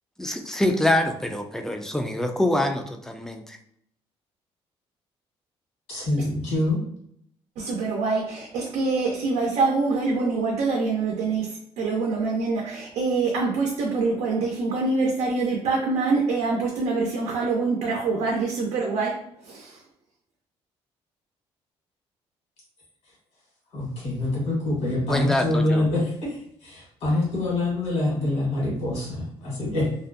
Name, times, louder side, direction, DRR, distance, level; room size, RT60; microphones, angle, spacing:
voice 1, 0.2-3.6 25.1-25.9, left 1 dB, 5° left, 5 dB, 0.3 m, -25 dB
voice 2, 5.9-6.8 23.7-29.9, left 2 dB, 75° left, -4 dB, 1.4 m, -25 dB
voice 3, 7.6-19.2 19.4-19.8, right 3 dB, 85° right, -1 dB, 0.5 m, -25 dB
2.5 x 2.0 x 2.5 m, 0.69 s
cardioid pair, 95°, 11 cm